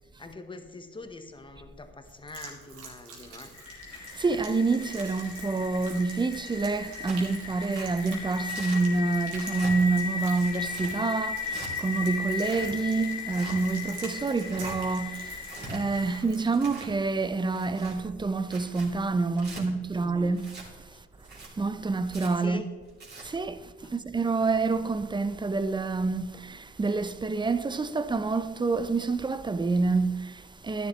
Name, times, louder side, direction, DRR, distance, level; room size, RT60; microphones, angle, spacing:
voice 1, 0.2-3.5 8.5-8.6 14.2-14.3 16.1-16.2 19.4-20.2 20.9-21.0 22.3-22.7 23.8-23.9, left 3 dB, 15° left, 1.3 m, -44 dB
sound 1, 2.0-16.7, right 4 dB, 65° right, 3.0 m, -47 dB
sound 2, 3.5-16.2, left 6 dB, 55° left, 1.3 m, -37 dB
voice 2, 4.2-20.6 21.6-22.6 23.2-30.9, right 3 dB, 15° right, 0.7 m, -27 dB
Tearing, 7.0-7.3 7.7-7.9 8.5-8.8 9.3-9.7 10.3-10.9 11.5-11.7 12.3-12.7 13.3-13.6 14.2-14.8 15.3-15.8 16.4-16.9 17.5-18.0 18.4-18.9 19.4-19.6 20.4-20.7 21.2-21.5 22.1-22.3 22.9-23.2, right 3 dB, 30° right, 3.6 m, -43 dB
12.0 x 10.5 x 3.3 m
hypercardioid pair, 70°, 33 cm